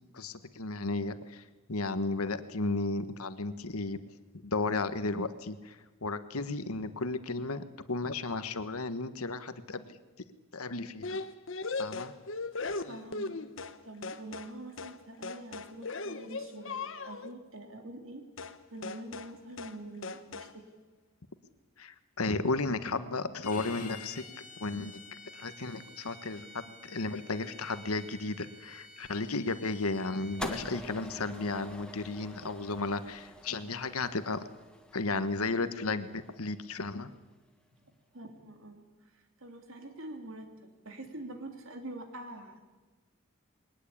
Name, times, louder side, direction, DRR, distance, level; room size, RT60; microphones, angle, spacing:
voice 1, 0.1-4.0 4.4-10.0 10.5-11.2 11.8-12.1 21.8-24.2 24.6-25.0 25.3-34.4 34.9-37.1, left 3 dB, 85° left, 12 dB, 1.4 m, -34 dB
sound 1, 11.0-13.8 14.0-14.5 14.8-15.0 15.2-17.3 18.4-18.6 18.8-19.3 19.6-19.8 20.0-20.5, left 3 dB, 60° left, 1.2 m, -38 dB
voice 2, 12.9-13.4 13.8-18.2 18.7-20.5 37.8-38.8 39.1-40.5 40.8-42.6, right 1 dB, 70° right, 5 dB, 3.1 m, -45 dB
Bowed string instrument, 23.4-30.7, left 3 dB, 35° left, 2.7 m, -50 dB
sound 2, 30.4-36.7, left 1 dB, 5° left, 1.5 m, -45 dB
21.0 x 19.5 x 8.6 m, 1.2 s
head